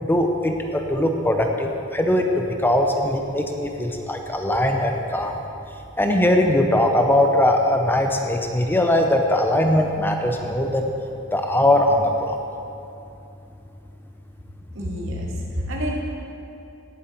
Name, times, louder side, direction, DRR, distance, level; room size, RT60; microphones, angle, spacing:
voice 1, 0.0-5.3 6.0-10.9 11.3-12.4, left 1 dB, 10° left, 3 dB, 0.6 m, -20 dB
voice 2, 14.7-16.0, equal, 65° right, -3 dB, 2.2 m, -28 dB
17.0 x 7.6 x 4.5 m, 2.8 s
head